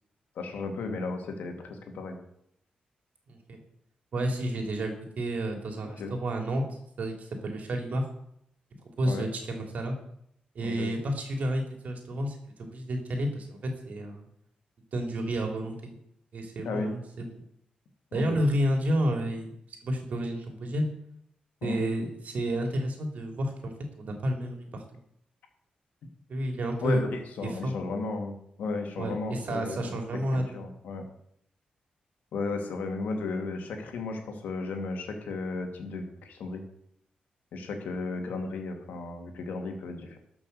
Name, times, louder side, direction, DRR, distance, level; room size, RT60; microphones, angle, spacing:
voice 1, 0.4-2.2 5.8-6.1 9.0-9.3 10.6-10.9 16.6-16.9 18.1-18.4 21.6-21.8 26.8-30.0 30.3-31.0 32.3-36.6 37.5-40.2, left 3 dB, 85° left, 4 dB, 2.1 m, -34 dB
voice 2, 3.3-3.6 4.1-6.6 7.0-8.1 9.0-10.0 10.5-14.2 14.9-15.9 16.3-17.3 18.1-19.5 19.8-20.9 21.6-24.8 26.3-27.0 27.4-27.7 29.0-30.6, right 1 dB, 65° right, 3 dB, 3.0 m, -30 dB
12.5 x 6.1 x 6.7 m, 0.74 s
cardioid pair, 80°, 3 cm